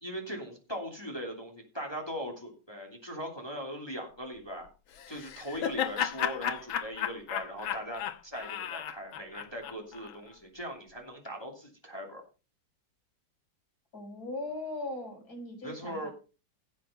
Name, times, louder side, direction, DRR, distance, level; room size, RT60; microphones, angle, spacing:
voice 1, 0.0-4.7 5.1-12.2 15.6-16.1, equal, 10° left, 1 dB, 2.8 m, -40 dB
Laughter, 5.0-10.2, left 9 dB, 85° left, 1.8 m, -34 dB
voice 2, 13.9-16.1, left 2 dB, 50° left, 1 dB, 5.5 m, -39 dB
16.0 x 6.3 x 5.7 m, 0.34 s
omnidirectional pair, 2.2 m